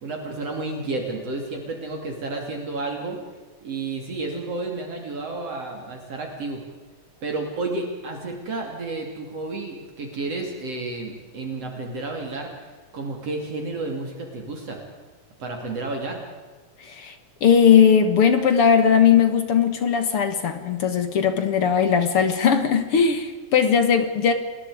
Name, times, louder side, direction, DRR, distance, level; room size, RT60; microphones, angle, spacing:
voice 1, 0.0-3.2 3.6-6.6 7.2-12.5 12.9-14.8 15.4-16.2, right 3 dB, 55° right, 2 dB, 3.8 m, -31 dB
voice 2, 16.8-17.2 17.4-24.3, left 7 dB, 55° left, 9 dB, 2.1 m, -18 dB
28.0 x 20.5 x 5.0 m, 1.4 s
omnidirectional pair, 3.3 m